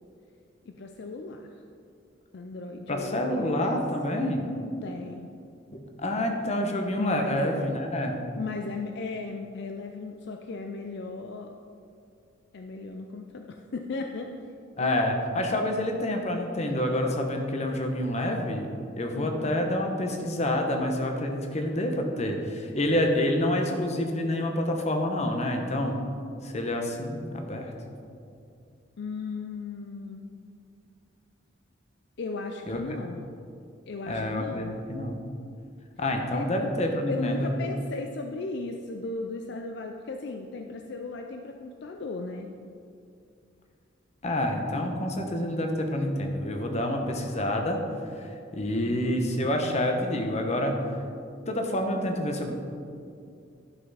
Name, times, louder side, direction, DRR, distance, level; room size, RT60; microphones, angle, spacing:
voice 1, 0.7-1.5 2.3-3.8 4.8-5.3 7.0-7.7 8.3-11.5 12.5-14.4 19.2-19.8 29.0-30.3 32.2-33.3 33.9-34.7 36.3-36.5 37.1-42.5 48.7-49.1, left 3 dB, 65° left, 4 dB, 0.4 m, -36 dB
voice 2, 2.9-4.5 5.7-8.2 14.8-18.7 19.0-26.0 26.4-27.7 32.7-32.8 34.1-35.2 36.0-37.5 44.2-47.8 48.2-50.9 51.5-52.5, left 1 dB, 35° left, 3 dB, 1.0 m, -28 dB
11.5 x 5.8 x 4.1 m, 2.4 s
head